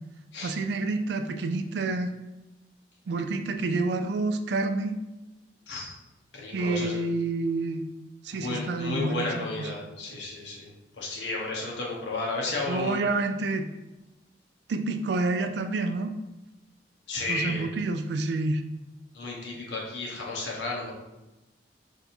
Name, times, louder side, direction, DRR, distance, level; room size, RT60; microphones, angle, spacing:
voice 1, 0.4-2.1 3.1-4.9 6.5-7.8 8.2-9.7 12.7-13.7 14.7-16.1 17.3-18.6, right 3 dB, 70° right, 7 dB, 0.4 m, -28 dB
voice 2, 6.3-7.0 8.4-10.7 11.0-13.0 17.1-17.6 19.1-20.9, left 2 dB, 80° left, -3 dB, 1.1 m, -32 dB
3.4 x 2.7 x 4.2 m, 1.0 s
head